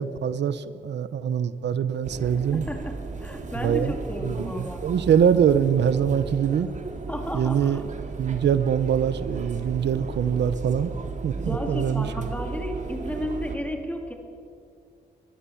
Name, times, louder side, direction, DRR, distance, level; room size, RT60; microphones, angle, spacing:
voice 1, 0.0-2.6 3.6-3.9 4.2-6.7 7.3-7.8 8.2-10.9 11.2-12.3, right 8 dB, 80° right, 14 dB, 0.8 m, -23 dB
sound 1, 2.0-13.6, right 4 dB, 45° right, 2.2 m, -35 dB
voice 2, 2.5-4.8 7.1-7.8 11.3-14.1, left 1 dB, 10° left, 3 dB, 2.6 m, -33 dB
23.0 x 21.0 x 7.2 m, 2.4 s
wide cardioid pair, 150°, 18 cm